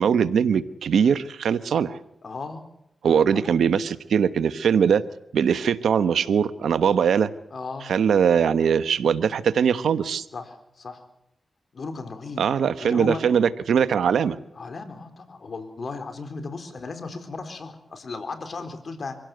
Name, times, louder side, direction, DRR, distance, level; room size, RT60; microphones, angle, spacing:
voice 1, 0.0-2.0 3.0-5.0 5.3-7.3 7.9-10.3 12.4-14.4, right 7 dB, 85° right, 13 dB, 1.0 m, -21 dB
voice 2, 2.2-2.6 3.1-3.6 7.5-7.9 10.3-11.0 11.7-12.4 12.8-13.2 14.6-19.2, left 3 dB, 60° left, 7 dB, 4.1 m, -35 dB
24.5 x 16.5 x 7.8 m, 0.79 s
cardioid pair, 45°, 0 cm